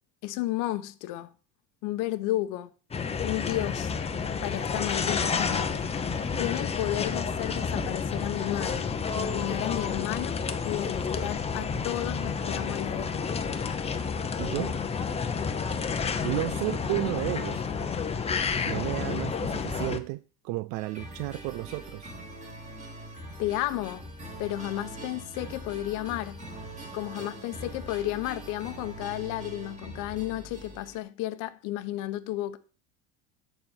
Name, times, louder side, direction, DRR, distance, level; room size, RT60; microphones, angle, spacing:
voice 1, 0.2-1.3 1.8-2.7 3.2-3.9 4.4-5.9 6.4-13.3 23.4-24.1 24.4-26.4 26.9-32.6, left 15 dB, 60° left, 1.0 m, -33 dB
sound 1, 2.9-20.0, left 5 dB, 15° left, 0.8 m, -30 dB
voice 2, 14.4-14.8 16.2-17.7 18.7-22.1, right 19 dB, 65° right, 0.4 m, -32 dB
sound 2, 20.7-31.0, right 1 dB, 20° right, 2.3 m, -43 dB
9.0 x 4.3 x 7.1 m
cardioid pair, 130°, 35 cm